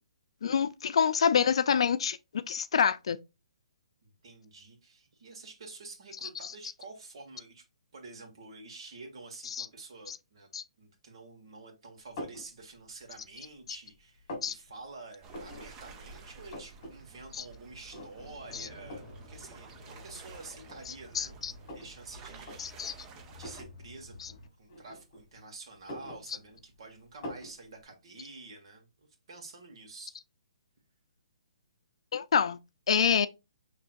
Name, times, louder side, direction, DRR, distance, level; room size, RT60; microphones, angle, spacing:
voice 1, 0.4-3.2 6.2-6.3 9.5-9.7 10.1-10.2 10.5-10.6 14.4-14.5 17.4-17.5 21.1-21.5 22.6-22.9 32.1-32.6 32.9-33.3, left 7 dB, 60° left, 0.5 m, -27 dB
voice 2, 4.0-7.6 7.9-10.5 10.8-21.4 21.7-22.7 23.1-30.2, right 3 dB, 55° right, 1.7 m, -49 dB
sound 1, 12.2-12.5 13.0-13.7 13.9-14.5 15.3-15.7 16.0-16.1 16.3-16.9 17.3-17.4 17.9-18.4 18.9-19.2 20.0-20.1 20.6-22.0 22.4-22.6 23.4-23.7 24.7-25.4 25.7-26.7 27.2-27.5, left 1 dB, 30° left, 1.9 m, -43 dB
sound 2, 15.2-23.6, right 4 dB, 15° right, 0.5 m, -51 dB
sound 3, 18.2-24.5, left 2 dB, ahead, 1.5 m, -52 dB
5.9 x 3.2 x 2.5 m
hypercardioid pair, 165°, 3 cm